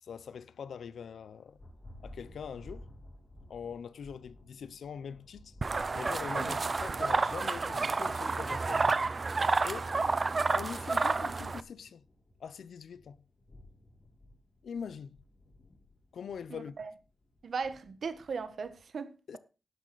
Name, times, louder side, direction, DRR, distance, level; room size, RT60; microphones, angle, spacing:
voice 1, 0.0-1.6 2.0-2.9 3.5-5.6 5.9-8.9 9.6-9.9 10.5-12.0 12.4-13.2 14.6-15.2 16.1-16.7 19.3-19.4, left 7 dB, 80° left, 0.7 m, -43 dB
Thunder, 1.5-18.8, left 1 dB, 35° left, 3.5 m, -57 dB
sound 1, 5.6-11.6, right 3 dB, 35° right, 0.5 m, -30 dB
voice 2, 16.5-16.9 17.4-19.1, right 5 dB, 60° right, 1.3 m, -38 dB
12.5 x 10.5 x 4.1 m
wide cardioid pair, 155°, 0 cm